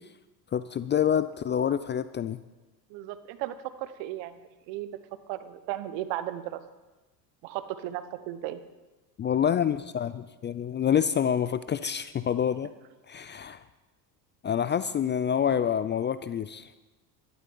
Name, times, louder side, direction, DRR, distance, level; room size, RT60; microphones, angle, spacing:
voice 1, 0.5-2.4 9.2-12.7 13.1-13.6 14.4-16.7, left 8 dB, 25° left, 14 dB, 0.4 m, -27 dB
voice 2, 2.9-6.6 7.4-8.6, right 13 dB, 60° right, 12 dB, 1.2 m, -36 dB
12.0 x 12.0 x 5.6 m, 1.1 s
hypercardioid pair, 75°, 49 cm